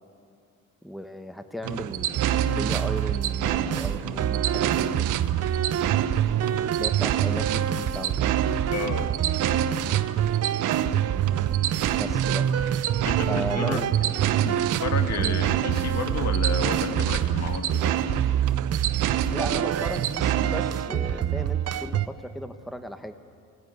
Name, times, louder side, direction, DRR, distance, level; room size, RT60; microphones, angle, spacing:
voice 1, 0.8-5.1 6.8-8.4 12.0-12.5 13.3-14.1 15.2-15.4 19.3-23.1, equal, ahead, 9 dB, 1.1 m, -35 dB
sound 1, 1.6-20.8, right 10 dB, 85° right, 0.9 m, -30 dB
sound 2, 2.1-22.1, right 10 dB, 55° right, 0.8 m, -26 dB
voice 2, 8.7-9.1 13.0-13.9 14.4-17.9, left 5 dB, 60° left, 6 dB, 2.1 m, -31 dB
22.5 x 18.0 x 9.7 m, 2.4 s
cardioid pair, 90°, 30 cm